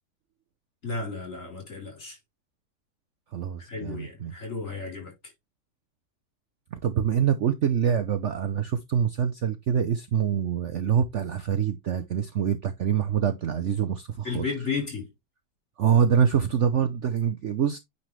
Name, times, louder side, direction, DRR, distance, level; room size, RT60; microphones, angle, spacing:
voice 1, 0.8-2.2 3.7-5.1 14.2-15.1, left 4 dB, 45° left, 4.1 m, -33 dB
voice 2, 3.3-4.3 6.8-14.4 15.8-17.8, right 8 dB, 60° right, 0.8 m, -25 dB
9.2 x 4.1 x 3.1 m
omnidirectional pair, 1.8 m